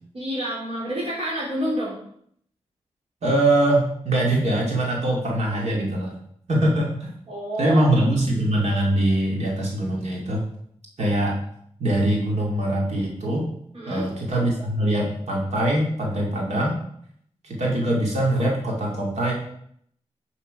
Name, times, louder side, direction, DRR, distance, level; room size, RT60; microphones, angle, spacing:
voice 1, 0.1-2.0 7.3-7.8 13.7-14.1, equal, 65° right, -6 dB, 3.6 m, -28 dB
voice 2, 3.2-6.1 6.5-7.1 7.6-10.5 11.0-11.4 11.8-13.4 13.9-16.8 17.4-19.3, right 1 dB, 85° right, -2 dB, 2.2 m, -22 dB
11.0 x 5.8 x 5.0 m, 0.68 s
cardioid pair, 65°, 11 cm